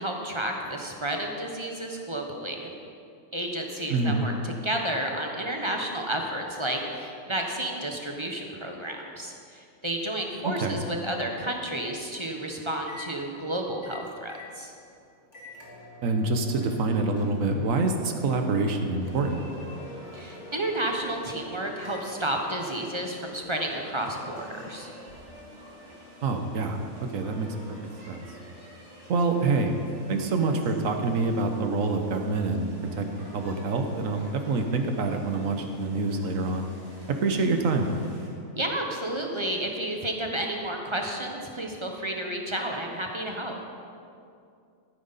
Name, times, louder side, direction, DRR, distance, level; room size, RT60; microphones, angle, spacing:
voice 1, 0.0-2.8 3.3-14.7 20.1-24.9 38.6-43.6, right 1 dB, 25° right, 1 dB, 0.9 m, -31 dB
voice 2, 3.9-4.2 10.4-10.8 16.0-19.4 26.2-27.5 28.1-28.3 29.1-29.7 30.1-32.7 33.0-36.7 37.2-37.9, right 3 dB, 85° right, 5 dB, 1.3 m, -26 dB
Microwave oven, 10.2-25.9, left 1 dB, 65° left, 2.5 m, -48 dB
sound 1, 19.0-38.3, equal, 60° right, 2.8 m, -48 dB
14.0 x 9.2 x 4.1 m, 2.5 s
omnidirectional pair, 1.4 m